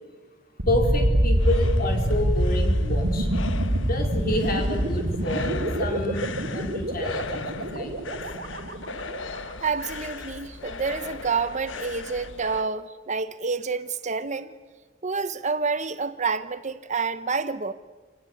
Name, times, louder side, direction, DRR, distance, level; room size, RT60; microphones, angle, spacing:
sound 1, 0.6-9.5, right 1 dB, 60° right, 2.6 m, -25 dB
voice 1, 0.7-3.3 3.8-8.2, left 1 dB, 50° left, 4.4 m, -29 dB
sound 2, 0.8-12.7, left 4 dB, 70° left, 1.3 m, -38 dB
voice 2, 9.6-14.5 15.0-17.7, right 5 dB, 40° right, 0.9 m, -28 dB
28.5 x 18.0 x 8.5 m
head